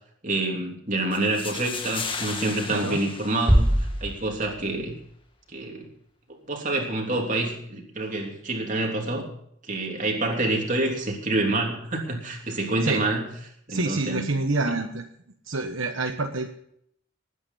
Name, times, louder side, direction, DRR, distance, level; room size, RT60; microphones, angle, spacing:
voice 1, 0.2-5.0 5.5-5.9 6.5-9.3 9.7-13.3 13.7-14.2 14.7-14.8, right 2 dB, 35° right, 1 dB, 3.2 m, -27 dB
sound 1, 1.1-4.1, left 5 dB, 25° left, 1.5 m, -35 dB
sound 2, 3.5-5.4, equal, 5° right, 0.4 m, -24 dB
voice 2, 13.7-15.0 15.5-16.5, right 3 dB, 70° right, 4 dB, 1.2 m, -27 dB
19.0 x 9.7 x 5.6 m, 0.69 s
head